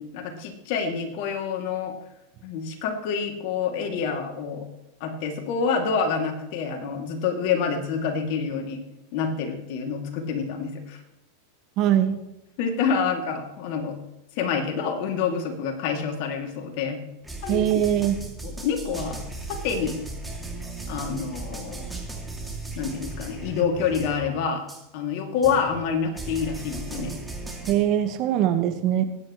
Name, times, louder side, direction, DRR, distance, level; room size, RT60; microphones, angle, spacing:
voice 1, 0.0-1.9 2.4-4.6 5.0-8.8 9.1-11.0 12.6-14.0 14.4-17.0 17.4-17.7 18.4-19.2 19.5-20.0 20.9-21.9 22.7-24.6 24.9-27.1, left 6 dB, 60° left, 3 dB, 2.7 m, -27 dB
voice 2, 11.8-12.2 17.5-18.2 27.7-29.0, right 11 dB, 45° right, 9 dB, 1.3 m, -22 dB
sound 1, 17.2-24.4 24.7-24.8 25.4-27.7, right 2 dB, 5° right, 2.7 m, -36 dB
21.5 x 9.8 x 3.2 m, 0.91 s
hypercardioid pair, 110°, 0 cm